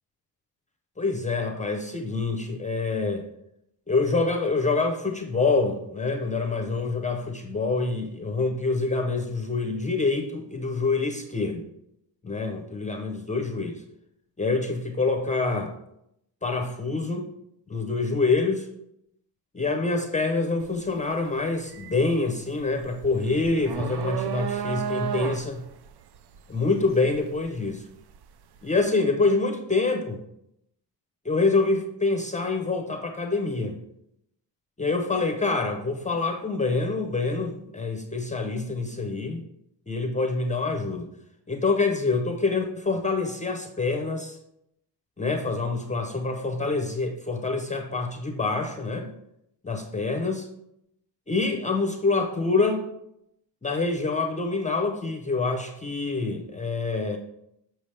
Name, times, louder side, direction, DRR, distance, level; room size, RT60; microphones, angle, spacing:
voice 1, 1.0-3.2 3.9-11.6 12.2-13.8 14.4-15.7 16.4-17.3 17.7-18.7 19.5-25.6 26.5-27.8 28.6-30.2 31.2-33.8 34.8-39.4 39.9-41.1 41.5-44.4 45.2-49.1 49.6-50.5 51.3-52.8 53.6-57.2, left 3 dB, 15° left, 4 dB, 0.6 m, -26 dB
sound 1, 20.6-20.9 21.2-28.2, right 8 dB, 65° right, 0.5 m, -33 dB
7.0 x 5.9 x 3.3 m, 0.79 s
wide cardioid pair, 135°, 43 cm